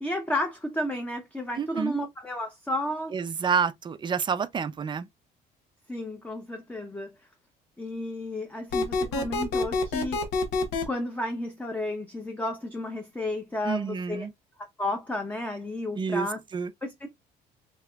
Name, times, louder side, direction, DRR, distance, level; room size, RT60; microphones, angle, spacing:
voice 1, 0.0-3.1 5.9-7.1 7.8-10.2 10.8-14.3 14.8-16.4 16.8-17.1, left 1 dB, 10° left, 0.8 m, -32 dB
voice 2, 1.6-2.0 3.1-5.1 13.6-14.3 16.0-16.3 16.5-16.7, right 6 dB, 25° right, 0.5 m, -28 dB
sound 1, 8.7-10.8, left 3 dB, 85° left, 1.0 m, -26 dB
5.6 x 2.9 x 2.3 m
cardioid pair, 110°, 17 cm